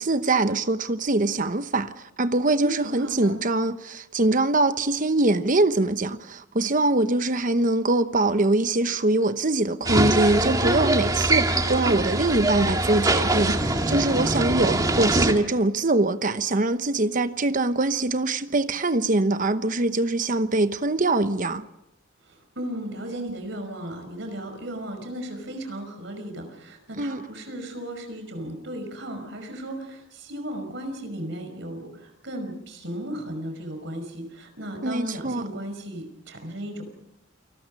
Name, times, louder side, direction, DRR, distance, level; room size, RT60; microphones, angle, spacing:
voice 1, 0.0-21.7 27.0-27.2 34.8-35.5, right 2 dB, 45° right, 1.0 m, -23 dB
voice 2, 2.5-3.4 14.1-14.5 22.2-36.8, right 1 dB, 65° right, 5.5 m, -35 dB
sound 1, 9.9-15.3, right 2 dB, 20° right, 2.0 m, -23 dB
28.5 x 20.0 x 5.4 m
head